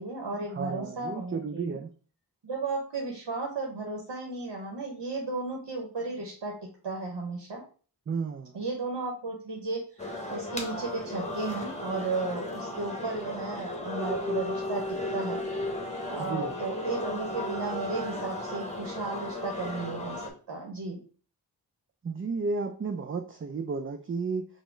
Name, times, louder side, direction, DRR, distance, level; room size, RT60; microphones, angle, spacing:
voice 1, 0.0-1.8 2.4-7.6 8.5-15.4 16.1-21.0, right 3 dB, 80° right, 0 dB, 0.8 m, -34 dB
voice 2, 0.5-1.9 8.1-8.5 16.3-16.5 22.0-24.5, right 4 dB, 30° right, 6 dB, 0.4 m, -32 dB
sound 1, 10.0-20.3, left 1 dB, 15° left, 0.9 m, -35 dB
4.1 x 2.1 x 4.3 m, 0.40 s
wide cardioid pair, 45°, 41 cm